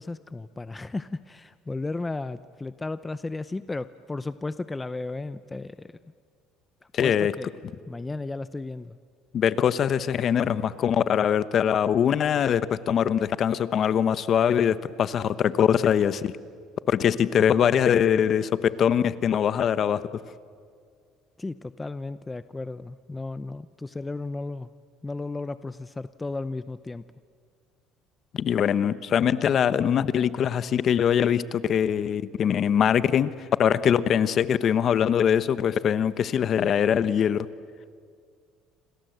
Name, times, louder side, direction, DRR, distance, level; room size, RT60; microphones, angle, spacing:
voice 1, 0.0-6.0 7.0-7.5 7.9-9.0 21.4-24.7 25.0-27.0, left 3 dB, 15° left, 14 dB, 0.6 m, -34 dB
voice 2, 6.9-7.3 9.3-16.3 16.9-20.0 28.3-33.3 33.6-37.5, left 8 dB, 45° left, 15 dB, 1.0 m, -22 dB
28.0 x 27.0 x 8.0 m, 2.1 s
cardioid pair, 115°, 0 cm